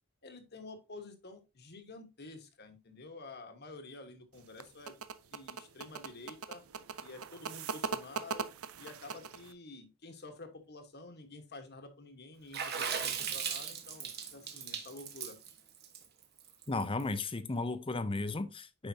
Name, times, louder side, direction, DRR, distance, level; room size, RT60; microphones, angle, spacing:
voice 1, 0.2-5.0 5.3-6.6 7.0-8.5 8.8-15.4, left 2 dB, 50° left, 1.3 m, -50 dB
sound 1, 4.4-9.5, right 5 dB, 85° right, 0.6 m, -40 dB
Water / Splash splatter, 12.5-17.0, right 7 dB, 50° right, 1.2 m, -37 dB
voice 2, 16.7-18.9, left 3 dB, 25° left, 0.6 m, -35 dB
9.1 x 5.0 x 2.8 m
head